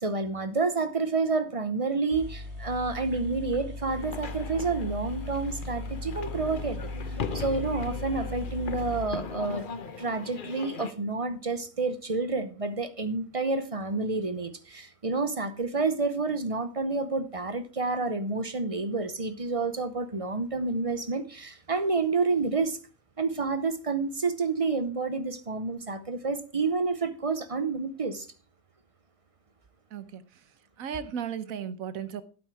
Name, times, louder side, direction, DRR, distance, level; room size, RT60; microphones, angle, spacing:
voice 1, 0.0-6.9 7.3-9.7 10.0-22.8 23.2-28.3, right 3 dB, 30° right, 0.7 m, -29 dB
sound 1, 1.8-1.9 2.1-9.9, left 2 dB, 55° right, 3.9 m, -38 dB
sound 2, 3.9-10.9, left 5 dB, 45° left, 0.9 m, -39 dB
voice 2, 29.9-30.4 30.8-32.2, right 8 dB, 85° right, 1.3 m, -35 dB
12.5 x 8.4 x 4.6 m
omnidirectional pair, 1.4 m